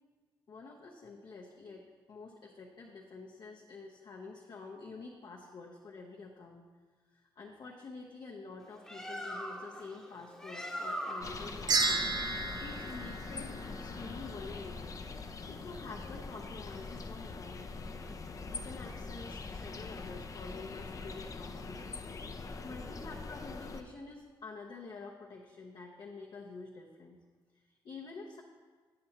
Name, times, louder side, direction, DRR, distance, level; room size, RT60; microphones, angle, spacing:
voice 1, 0.5-6.7 7.1-15.0 15.5-17.7 18.5-21.8 22.6-27.2 27.5-28.4, left 4 dB, 55° left, -2 dB, 0.9 m, -48 dB
Bird, 8.6-13.8, equal, 5° left, 1.0 m, -42 dB
sound 1, 11.2-23.8, left 3 dB, 40° left, 0.6 m, -43 dB
sound 2, 11.7-14.1, right 3 dB, 50° right, 0.6 m, -33 dB
7.7 x 7.6 x 2.9 m, 1.4 s
cardioid pair, 75°, 9 cm